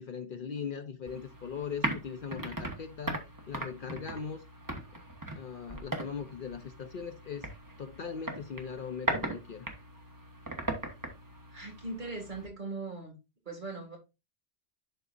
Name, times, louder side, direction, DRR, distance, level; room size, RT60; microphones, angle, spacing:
voice 1, 0.0-3.2 3.5-4.4 5.3-7.5 7.8-9.7, left 6 dB, 55° left, 0.7 m, -39 dB
sound 1, 1.1-12.5, right 1 dB, 20° right, 1.1 m, -39 dB
voice 2, 11.5-13.1 13.5-14.0, right 3 dB, 45° right, 2.3 m, -39 dB
11.5 x 4.0 x 2.5 m
omnidirectional pair, 1.1 m